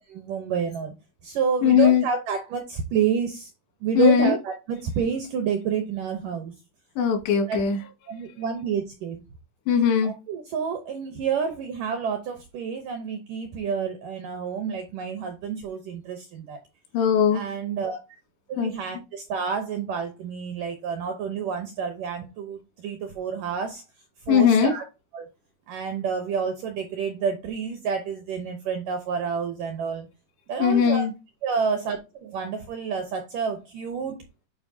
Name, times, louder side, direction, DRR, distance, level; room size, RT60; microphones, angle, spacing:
voice 1, 0.1-0.9 1.2-3.5 3.8-6.5 7.5-7.6 8.1-9.2 10.0-16.6 17.3-18.0 18.5-23.8 24.3-24.8 25.1-25.3 25.7-30.1 30.5-31.1 31.4-34.2, right 6 dB, 80° right, 1.9 m, -29 dB
voice 2, 1.6-2.1 4.0-4.4 7.0-7.8 9.7-10.1 16.9-17.4 18.6-18.7 24.3-24.7 30.6-31.1, left 7 dB, 85° left, 3.9 m, -19 dB
10.5 x 4.6 x 2.7 m
omnidirectional pair, 4.9 m